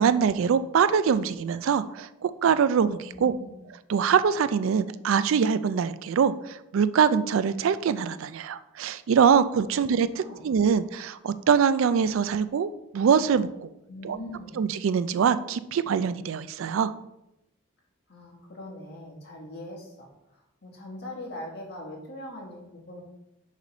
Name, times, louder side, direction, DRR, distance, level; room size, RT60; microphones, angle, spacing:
voice 1, 0.0-3.3 3.9-13.7 14.0-14.2 14.6-16.9, right 7 dB, 80° right, 13 dB, 0.3 m, -23 dB
voice 2, 3.0-3.5 9.7-9.8 10.1-10.5 13.9-14.6 18.1-23.0, left 1 dB, 55° left, -2 dB, 1.6 m, -41 dB
6.6 x 3.2 x 5.2 m, 0.89 s
head